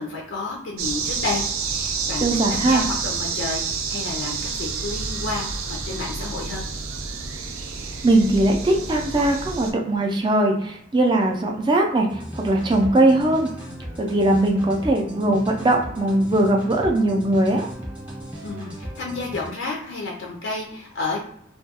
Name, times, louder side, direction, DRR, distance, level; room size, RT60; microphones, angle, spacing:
voice 1, 0.0-6.6 18.4-21.3, left 3 dB, 65° left, -1 dB, 0.4 m, -31 dB
sound 1, 0.8-9.7, right 5 dB, 90° right, 0.5 m, -29 dB
voice 2, 2.2-2.8 8.0-13.5 14.0-17.7, right 1 dB, 25° right, 1 dB, 0.4 m, -20 dB
sound 2, 12.1-19.5, right 1 dB, 5° right, 0.8 m, -36 dB
2.2 x 2.2 x 2.8 m, 0.69 s
head